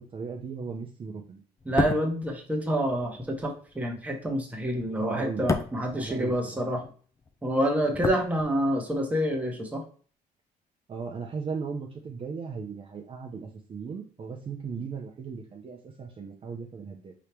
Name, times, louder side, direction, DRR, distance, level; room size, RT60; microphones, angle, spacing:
voice 1, 0.0-1.4 5.0-6.3 10.9-17.1, right 5 dB, 35° right, 0 dB, 0.7 m, -37 dB
sound 1, 1.6-6.9 7.2-9.0 9.3-9.4, left 3 dB, 20° left, 0.5 m, -33 dB
voice 2, 1.7-6.9 7.4-9.8, equal, 10° right, 1 dB, 1.1 m, -28 dB
4.7 x 3.0 x 3.3 m, 0.43 s
cardioid pair, 110°, 17 cm